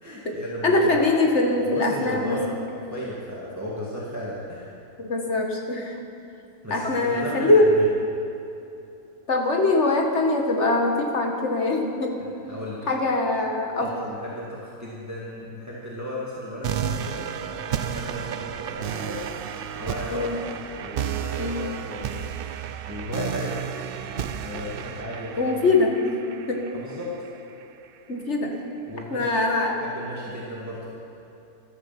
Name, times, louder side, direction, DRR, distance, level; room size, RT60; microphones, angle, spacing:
voice 1, 0.0-1.0 1.6-4.7 6.6-7.8 12.5-12.9 13.8-19.2 19.8-20.3 20.7-22.3 22.9-25.5 26.7-27.2 28.9-29.3 29.8-30.9, equal, 10° right, -6 dB, 2.0 m, -35 dB
voice 2, 0.6-2.7 5.0-6.1 6.7-7.7 9.3-12.2 12.9-13.9 20.1-20.4 21.4-21.6 25.4-26.6 28.1-28.5 29.1-29.8, left 2 dB, 50° left, 2 dB, 1.7 m, -23 dB
sound 1, 16.6-27.6, right 8 dB, 70° right, 0.5 m, -32 dB
14.5 x 12.5 x 5.9 m, 2.8 s
omnidirectional pair, 1.6 m